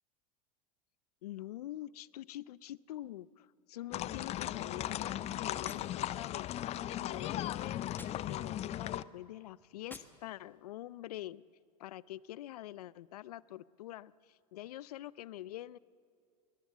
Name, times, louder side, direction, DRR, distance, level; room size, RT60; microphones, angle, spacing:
voice 1, 1.2-6.5 6.8-7.9 8.3-11.4 11.8-15.8, left 14 dB, 80° left, 21 dB, 0.5 m, -45 dB
sound 1, 3.9-9.0, left 12 dB, 35° left, 0.5 m, -37 dB
Gunshot gunfire, 5.6-6.7 7.9-8.8 9.8-10.7, left 2 dB, 10° left, 1.4 m, -55 dB
22.5 x 18.5 x 7.3 m, 2.4 s
hypercardioid pair, 100°, 19 cm